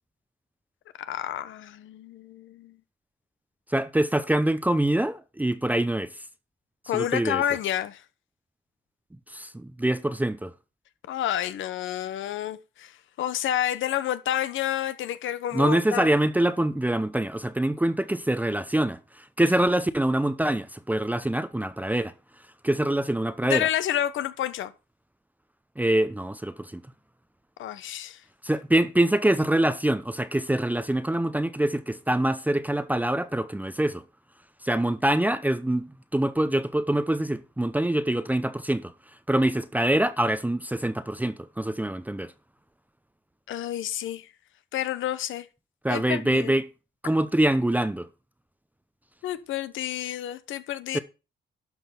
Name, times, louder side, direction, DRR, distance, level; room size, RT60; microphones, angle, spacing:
voice 1, 1.0-2.8 6.9-8.0 11.1-16.1 23.4-24.7 27.6-28.2 43.5-44.3 44.7-45.5 45.9-46.5 49.2-51.0, left 11 dB, 75° left, 1.1 m, -29 dB
voice 2, 3.7-6.1 6.9-7.4 9.3-10.5 15.5-22.1 22.6-23.7 25.8-26.8 28.4-34.0 34.6-38.9 39.3-42.3 45.8-46.7 47.0-48.1 50.9-51.0, right 1 dB, 10° right, 0.7 m, -25 dB
12.0 x 5.4 x 5.7 m
cardioid pair, 90°, 20 cm